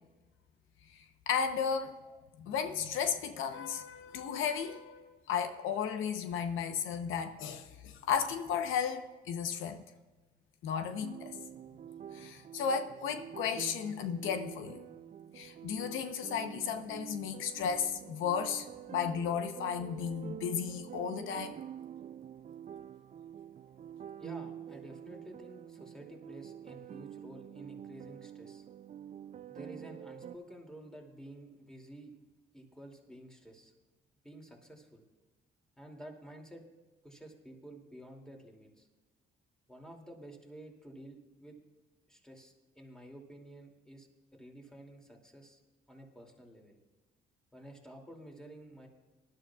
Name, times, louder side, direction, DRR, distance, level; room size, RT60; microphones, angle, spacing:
voice 1, 0.9-2.0 2.4-9.8 10.6-11.4 12.1-14.9 15.3-21.5, left 7 dB, 85° left, 8 dB, 0.9 m, -34 dB
sound 1, 11.0-30.4, right 9 dB, 40° right, 0.4 m, -47 dB
voice 2, 24.2-28.7 29.5-32.1 32.5-33.7 34.2-35.0 35.8-36.6 37.0-38.9 39.7-41.6 42.1-44.1 44.3-45.6 45.9-46.8 47.5-48.9, right 1 dB, 5° left, 1 dB, 2.7 m, -51 dB
19.5 x 12.0 x 2.4 m, 1.3 s
cardioid pair, 90°, 20 cm